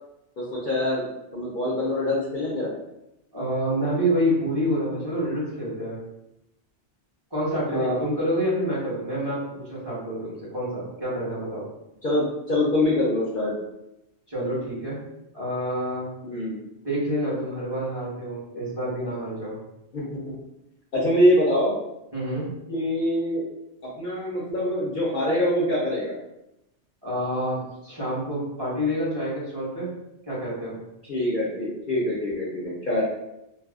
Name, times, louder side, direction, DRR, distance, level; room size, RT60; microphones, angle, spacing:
voice 1, 0.4-2.7 7.7-8.0 12.0-13.5 16.2-16.6 19.9-20.2 20.9-21.7 22.7-23.4 23.8-26.1 31.1-33.0, left 1 dB, 55° left, -6 dB, 0.7 m, -24 dB
voice 2, 3.3-6.0 7.3-11.7 14.3-15.0 15.3-16.1 16.8-19.6 22.1-22.5 27.0-29.9 30.3-30.8, equal, 25° right, -8 dB, 0.9 m, -27 dB
3.3 x 2.1 x 2.4 m, 0.88 s
omnidirectional pair, 1.2 m